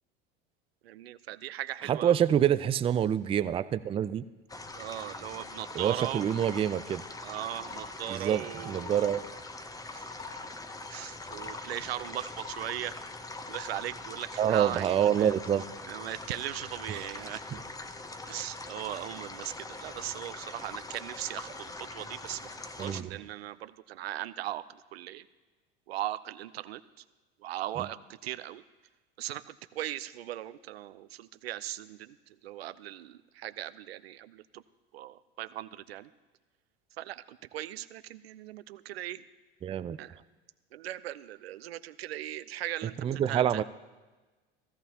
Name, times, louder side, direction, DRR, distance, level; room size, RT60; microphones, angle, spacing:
voice 1, 0.8-2.2 4.7-6.2 7.2-9.0 9.9-10.1 10.9-13.0 13.5-15.4 15.9-17.6 18.3-22.4 22.8-24.6 24.9-25.2 25.9-26.8 27.4-28.0 28.2-28.6 29.2-32.2 32.4-34.6 34.9-36.1 37.0-39.2 40.0-40.2 40.7-43.6, right 13 dB, 85° right, 14 dB, 0.5 m, -38 dB
voice 2, 1.8-4.2 5.7-7.0 8.1-9.3 14.4-15.6 16.9-17.0 22.8-23.1 27.8-27.9 39.6-40.0 43.0-43.6, right 9 dB, 20° right, 13 dB, 0.4 m, -27 dB
sound 1, 4.5-23.0, left 2 dB, 10° left, 0.8 m, -43 dB
sound 2, 6.2-6.7 7.3-7.9 8.6-9.2 9.8-10.5 11.2-11.6 12.2-12.7 13.3-13.8, left 4 dB, 25° left, 2.5 m, -45 dB
16.5 x 13.5 x 2.9 m, 1.2 s
hypercardioid pair, 85°, 30 cm